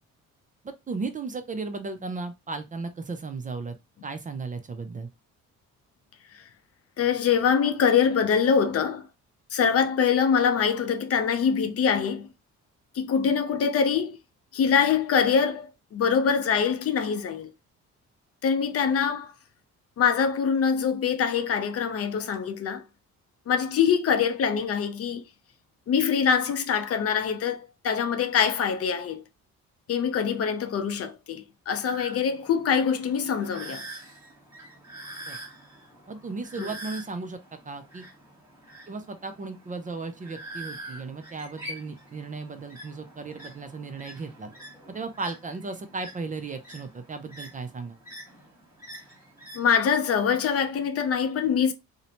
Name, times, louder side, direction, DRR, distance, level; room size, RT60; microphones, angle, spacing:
voice 1, 0.6-3.8 4.0-5.1 35.3-35.4 36.1-37.4 37.7-38.0 38.9-44.5 44.9-48.0, right 3 dB, 25° right, 0.4 m, -35 dB
voice 2, 7.0-9.1 9.5-12.3 12.9-14.2 14.5-17.5 18.4-19.3 20.0-22.8 23.5-25.2 25.9-29.2 29.9-33.8 36.6-36.7 49.5-51.7, left 7 dB, 50° left, 0.5 m, -24 dB
sound 1, 31.8-49.6, right 1 dB, 10° right, 1.3 m, -45 dB
2.6 x 2.1 x 2.9 m
cardioid pair, 90°, 30 cm